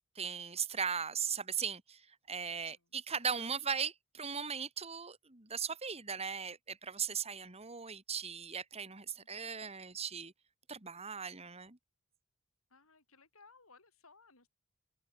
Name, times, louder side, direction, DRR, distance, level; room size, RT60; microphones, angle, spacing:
voice 1, 0.2-10.3 10.7-11.8, right 6 dB, 30° right, 2.2 m, -38 dB
voice 2, 2.3-2.8 3.3-3.5 9.2-9.7 12.7-14.5, left 4 dB, 85° left, 6.9 m, -63 dB
open air
head